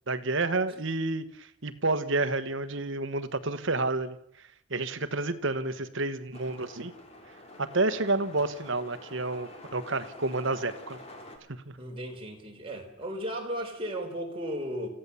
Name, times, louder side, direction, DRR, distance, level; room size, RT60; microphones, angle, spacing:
voice 1, 0.1-1.3 1.6-4.2 4.7-6.9 7.6-11.0 11.7-11.8, right 2 dB, 55° right, 12 dB, 1.2 m, -29 dB
sound 1, 6.3-11.4, left 1 dB, 30° left, 3.2 m, -47 dB
voice 2, 11.8-14.9, equal, 25° right, 1 dB, 4.0 m, -35 dB
29.0 x 15.5 x 7.0 m, 0.76 s
head